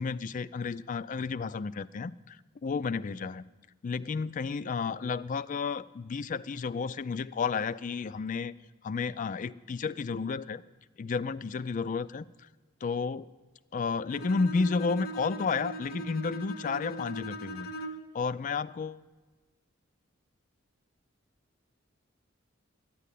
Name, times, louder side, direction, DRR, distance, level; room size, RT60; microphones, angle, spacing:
voice 1, 0.0-3.4 3.8-8.5 8.8-10.6 11.0-12.5 12.8-13.3 13.7-17.7 18.1-19.0, left 5 dB, 40° left, 17 dB, 0.3 m, -32 dB
Bowed string instrument, 14.1-18.2, right 2 dB, 85° left, 0.9 m, -40 dB
11.5 x 10.0 x 8.3 m, 1.3 s
head